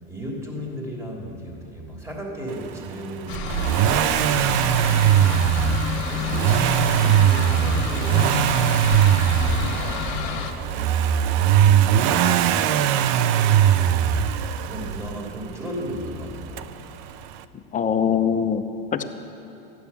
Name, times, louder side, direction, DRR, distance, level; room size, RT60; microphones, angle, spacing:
voice 1, 0.1-3.7 4.0-5.4 6.1-8.8 9.2-12.6 13.1-16.7, equal, 10° right, -2 dB, 2.9 m, -36 dB
sound 1, 3.3-10.5, left 8 dB, 70° left, 1.4 m, -30 dB
Accelerating revving vroom, 3.3-15.3 16.6-16.7, right 10 dB, 55° right, 0.6 m, -20 dB
voice 2, 17.7-19.0, left 7 dB, 25° left, 8 dB, 0.7 m, -23 dB
14.0 x 9.7 x 7.0 m, 2.9 s
supercardioid pair, 110°, 32 cm